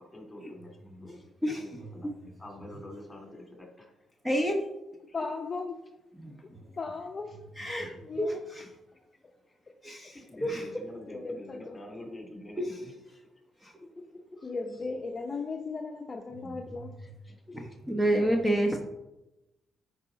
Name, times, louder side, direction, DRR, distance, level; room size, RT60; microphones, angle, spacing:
voice 1, 0.1-1.2 1.5-2.1 2.4-3.9 5.1-5.2 9.5-9.7 10.1-12.9 14.3-14.5 17.0-17.6, left 1 dB, 20° left, 1 dB, 2.5 m, -46 dB
voice 2, 4.2-4.5 6.2-6.3 7.6-7.9 8.2-8.7 9.8-10.2 10.4-10.6 13.6-13.7 16.4-16.5 17.9-18.8, right 1 dB, 5° right, 1 dB, 1.0 m, -28 dB
voice 3, 5.1-5.8 6.8-7.4 8.0-8.4 11.1-11.7 14.4-16.9, left 4 dB, 35° left, 2 dB, 0.7 m, -36 dB
9.7 x 4.8 x 3.9 m, 0.96 s
cardioid pair, 90°, 0 cm